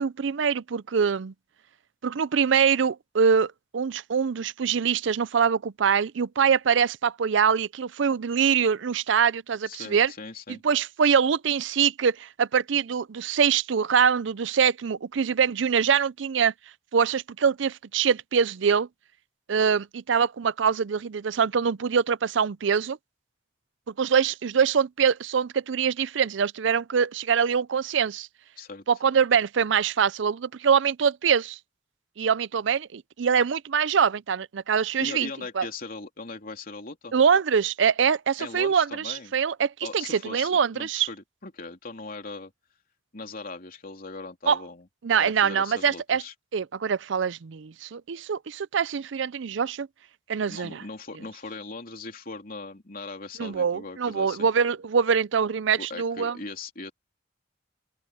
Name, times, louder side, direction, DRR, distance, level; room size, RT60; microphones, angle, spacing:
voice 1, 0.0-1.3 2.0-10.1 10.5-16.5 16.9-18.9 19.5-23.0 23.9-28.3 28.9-31.6 32.2-35.3 35.6-35.7 37.1-41.1 44.5-44.6 45.0-46.2 46.5-49.9 50.3-50.8 53.4-56.4, right 7 dB, 65° right, 0.5 m, -24 dB
voice 2, 9.7-10.6 28.6-28.8 35.0-37.1 38.4-39.3 39.8-42.5 43.1-44.9 45.2-46.3 50.5-54.5 55.8-56.9, left 3 dB, 50° left, 3.3 m, -39 dB
open air
head